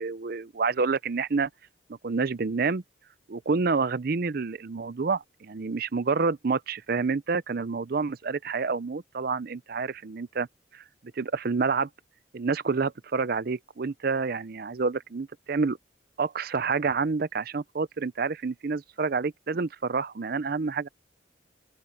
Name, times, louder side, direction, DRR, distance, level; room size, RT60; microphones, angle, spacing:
voice 1, 0.0-1.5 2.0-2.8 3.3-10.5 10.7-10.8 11.2-11.9 12.3-15.8 16.2-20.9, right 4 dB, 50° right, 0.5 m, -28 dB
open air
head